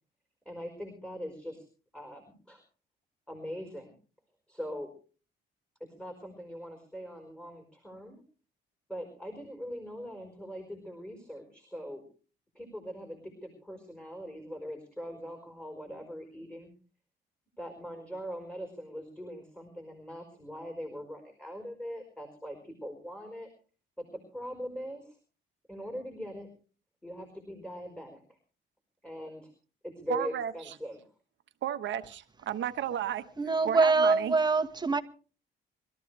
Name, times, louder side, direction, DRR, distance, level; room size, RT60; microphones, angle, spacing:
voice 1, 0.4-1.6 1.9-2.6 3.3-3.9 4.5-4.9 5.8-8.2 8.9-12.0 12.5-16.7 17.6-23.5 24.0-25.2 25.7-26.5 27.0-28.4 29.0-29.5 29.8-31.0, equal, 5° left, 4.7 m, -41 dB
voice 2, 30.1-30.7 31.6-33.2 33.6-34.3, right 10 dB, 70° right, 1.3 m, -33 dB
voice 3, 33.4-35.0, right 4 dB, 20° right, 1.6 m, -24 dB
23.5 x 13.5 x 3.4 m
cardioid pair, 90°, 20 cm